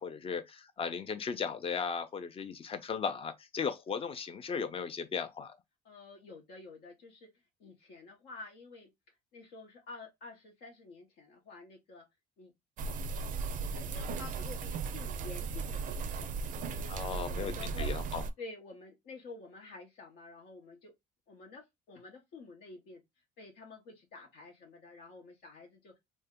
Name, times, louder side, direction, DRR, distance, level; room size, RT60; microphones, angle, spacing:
voice 1, 0.0-5.5 16.9-18.2, left 6 dB, 35° left, 0.6 m, -36 dB
voice 2, 5.8-7.3 7.6-8.9 9.3-12.1 12.4-12.5 13.6-18.0 18.4-20.9 21.3-23.0 23.4-26.0, left 3 dB, 75° left, 0.9 m, -50 dB
sound 1, 12.8-18.3, right 4 dB, 50° right, 0.4 m, -36 dB
2.7 x 2.1 x 3.5 m
cardioid pair, 110°, 17 cm